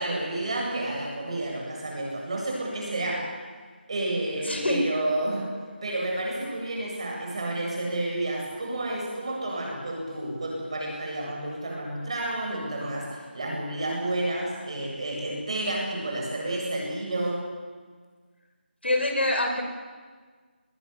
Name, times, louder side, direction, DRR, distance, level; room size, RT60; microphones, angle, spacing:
voice 1, 0.0-3.3 3.9-5.5 5.8-17.4, right 1 dB, 30° right, -1 dB, 7.9 m, -30 dB
voice 2, 4.4-4.8 18.8-19.6, left 1 dB, 75° left, 3 dB, 5.8 m, -25 dB
21.0 x 20.0 x 9.9 m, 1.6 s
figure-of-eight pair, 175°, 6 cm